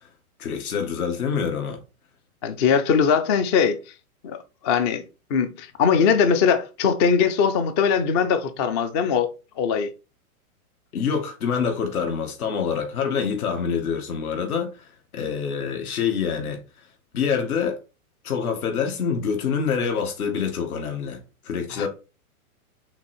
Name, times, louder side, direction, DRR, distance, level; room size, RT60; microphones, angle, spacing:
voice 1, 0.4-1.8 10.9-14.9 15.1-16.6 17.1-17.8 18.2-21.9, left 6 dB, 75° left, 2.0 m, -26 dB
voice 2, 2.4-3.8 4.2-9.3 9.6-9.9 21.7-21.9, left 6 dB, 20° left, 0.4 m, -21 dB
5.8 x 4.0 x 4.4 m
hypercardioid pair, 140°, 44 cm